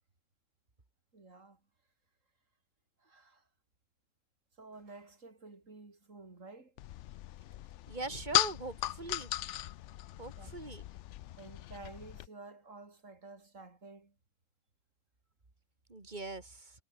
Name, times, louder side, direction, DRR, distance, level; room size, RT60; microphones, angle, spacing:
voice 1, 1.1-1.6 3.0-3.4 4.6-6.7 10.4-10.5 11.4-14.2, right 3 dB, 85° right, 3.9 m, -52 dB
sound 1, 6.8-12.3, left 14 dB, 70° left, 0.9 m, -37 dB
voice 2, 7.9-9.3 10.2-10.8 15.9-16.7, right 3 dB, 35° right, 2.6 m, -41 dB
omnidirectional pair, 1.3 m